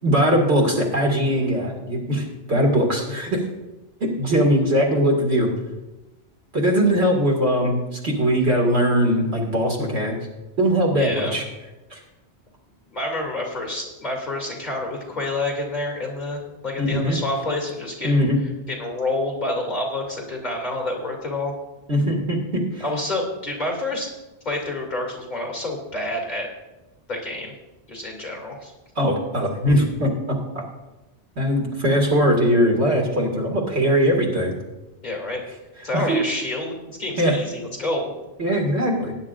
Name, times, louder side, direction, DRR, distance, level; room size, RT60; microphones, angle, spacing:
voice 1, 0.0-3.4 4.2-5.5 6.5-10.2 10.6-11.4 11.9-12.0 16.8-17.2 18.0-18.4 21.9-22.8 29.0-30.6 31.4-34.5 35.9-36.2 37.2-37.4 38.4-39.1, equal, 80° right, -1 dB, 2.5 m, -20 dB
voice 2, 10.9-11.4 12.9-18.2 18.7-21.5 22.8-24.1 24.4-26.5 27.1-27.5 27.9-28.7 35.0-35.4 35.8-38.1, left 2 dB, 40° left, 0 dB, 2.7 m, -28 dB
18.5 x 9.7 x 2.5 m, 1.1 s
omnidirectional pair, 1.1 m